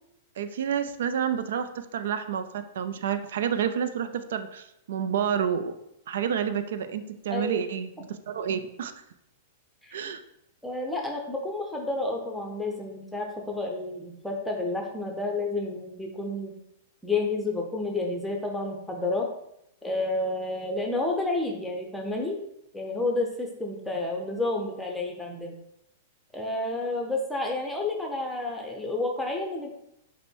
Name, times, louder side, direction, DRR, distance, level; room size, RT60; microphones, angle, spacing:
voice 1, 0.4-5.7 6.1-8.9 9.9-10.2, right 8 dB, 70° right, 10 dB, 0.4 m, -29 dB
voice 2, 7.3-7.6 9.8-10.0 10.6-16.6 17.0-19.3 19.8-22.4 22.7-25.5 26.3-29.7, left 2 dB, 5° left, 0 dB, 0.7 m, -30 dB
5.1 x 2.1 x 4.4 m, 0.81 s
hypercardioid pair, 110°, 0 cm